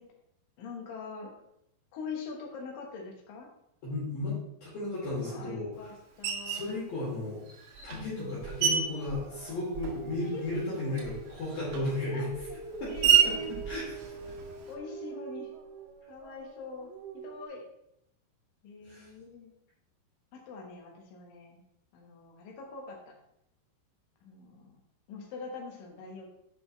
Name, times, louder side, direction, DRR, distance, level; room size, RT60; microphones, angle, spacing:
voice 1, 0.6-1.3 1.9-3.5 5.2-6.8 7.9-8.4 10.3-10.8 12.1-12.6 12.9-13.5 14.7-15.5 16.1-17.6 18.6-19.5 20.3-21.6 21.9-23.1 24.2-24.8 25.1-26.3, left 4 dB, 65° left, 0 dB, 2.3 m, -43 dB
voice 2, 3.8-4.3 4.6-5.9 6.4-7.4 7.8-12.3 12.8-13.4 13.7-14.2 18.8-19.1, left 2 dB, 50° left, -7 dB, 4.0 m, -35 dB
Screech, 6.2-6.7 7.5-10.2 10.5-14.8, right 8 dB, 85° right, 4.1 m, -30 dB
sound 1, 8.2-17.5, right 5 dB, 70° right, 2.9 m, -44 dB
8.6 x 6.7 x 3.3 m, 0.77 s
omnidirectional pair, 5.8 m